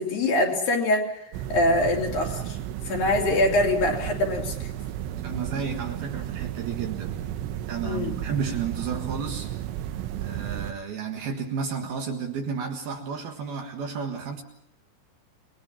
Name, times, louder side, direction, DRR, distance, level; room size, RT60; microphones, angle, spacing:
voice 1, 0.0-2.6 2.8-4.7 7.8-8.2, left 1 dB, 50° left, 4.2 m, -24 dB
sound 1, 1.3-10.7, right 11 dB, 80° right, 3.4 m, -33 dB
voice 2, 5.2-7.2 7.7-9.5 10.2-14.4, right 6 dB, 60° right, 3.1 m, -32 dB
28.5 x 21.0 x 5.8 m
omnidirectional pair, 5.6 m